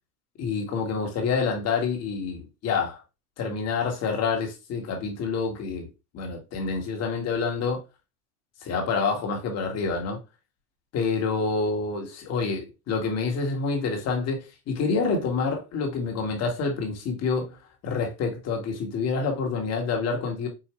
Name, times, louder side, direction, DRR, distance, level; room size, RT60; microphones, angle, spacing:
voice 1, 0.4-3.0 3.4-5.9 6.1-7.8 8.6-10.2 10.9-17.6 17.8-20.5, left 4 dB, 30° left, 1.3 m, -27 dB
4.8 x 2.5 x 3.0 m
hypercardioid pair, 120°, 47 cm